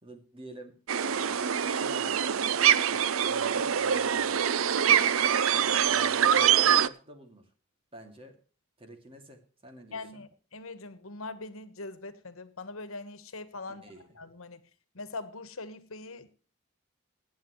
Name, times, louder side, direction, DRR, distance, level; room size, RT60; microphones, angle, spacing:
voice 1, 0.0-4.5 5.5-7.5 7.9-8.4 8.8-10.3 13.7-14.1, equal, 25° right, 2.5 m, -48 dB
sound 1, 0.9-6.9, right 8 dB, 80° right, 0.6 m, -24 dB
voice 2, 9.9-13.8 14.1-14.6 14.9-16.3, left 3 dB, 90° left, 1.3 m, -42 dB
22.5 x 9.3 x 3.1 m
head